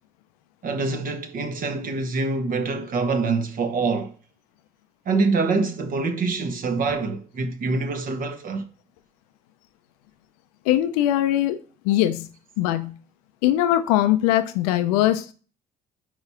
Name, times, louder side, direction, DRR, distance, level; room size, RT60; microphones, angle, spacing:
voice 1, 0.6-4.1 5.0-8.7, right 4 dB, 50° right, 1.1 m, -25 dB
voice 2, 10.7-11.6 11.8-12.3 12.6-12.9 13.4-15.3, left 13 dB, 90° left, 0.5 m, -21 dB
4.9 x 4.7 x 5.6 m
supercardioid pair, 75°, 19 cm